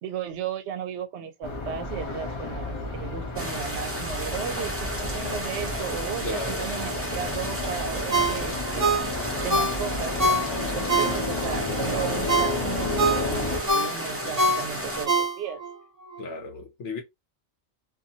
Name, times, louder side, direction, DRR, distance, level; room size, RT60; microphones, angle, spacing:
voice 1, 0.0-8.9 9.4-15.6, right 8 dB, 75° right, 0.8 m, -35 dB
sound 1, 1.4-13.6, left 2 dB, 35° left, 0.6 m, -32 dB
sound 2, 3.4-15.1, equal, 15° right, 0.6 m, -33 dB
voice 2, 6.2-6.7 16.2-17.0, left 3 dB, 80° left, 1.0 m, -35 dB
Ringtone, 8.1-11.6 12.0-15.7 16.1-16.2, right 2 dB, 35° right, 1.0 m, -25 dB
2.6 x 2.5 x 2.7 m
omnidirectional pair, 1.2 m